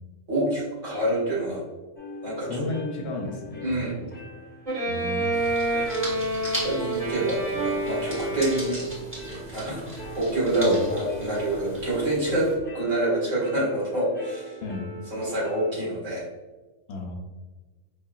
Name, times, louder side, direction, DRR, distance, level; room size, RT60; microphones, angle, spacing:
voice 1, 0.3-1.7 2.2-2.6 3.6-3.9 6.1-8.8 9.3-9.9 10.2-14.5 15.1-16.2, right 1 dB, 75° right, -8 dB, 2.1 m, -27 dB
sound 1, 2.0-15.7, left 1 dB, 15° left, 0.4 m, -41 dB
voice 2, 2.4-4.0 4.9-5.4 10.6-10.8 14.6-14.9 16.9-17.2, left 2 dB, 60° left, 0 dB, 0.8 m, -33 dB
Bowed string instrument, 4.7-9.1, right 1 dB, 30° right, 1.2 m, -28 dB
sound 2, 5.3-12.5, right 1 dB, 10° right, 0.9 m, -38 dB
4.8 x 2.7 x 2.4 m, 1.2 s
omnidirectional pair, 1.3 m